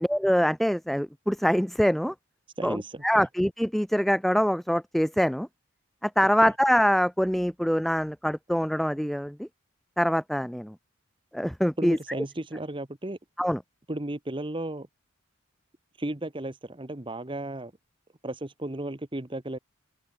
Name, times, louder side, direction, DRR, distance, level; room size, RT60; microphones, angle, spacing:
voice 1, 0.1-2.1 2.6-5.5 6.0-9.5 10.0-10.7 11.3-12.0 13.4-13.6, equal, ahead, 0.4 m, -24 dB
voice 2, 2.6-3.3 11.8-13.2 13.9-14.9 16.0-17.7 18.2-19.6, right 1 dB, 25° right, 1.1 m, -34 dB
open air
head